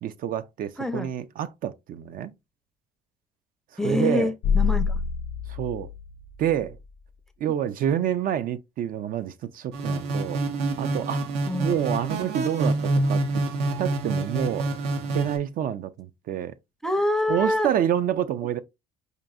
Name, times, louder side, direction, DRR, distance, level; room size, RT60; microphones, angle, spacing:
voice 1, 0.0-2.3 3.8-4.3 5.5-5.9 6.4-6.8 7.4-10.4 10.8-11.2 11.6-13.4 13.8-14.7 15.1-16.5 17.3-18.6, right 10 dB, 55° right, 0.4 m, -28 dB
voice 2, 0.8-1.1 3.8-5.0 8.0-8.1 11.5-11.7 16.8-17.7, left 2 dB, 5° left, 0.5 m, -25 dB
sound 1, 4.4-6.9, left 6 dB, 65° left, 0.4 m, -27 dB
sound 2, 9.7-15.4, right 2 dB, 85° right, 0.7 m, -27 dB
5.1 x 2.6 x 2.3 m
cardioid pair, 110°, 17 cm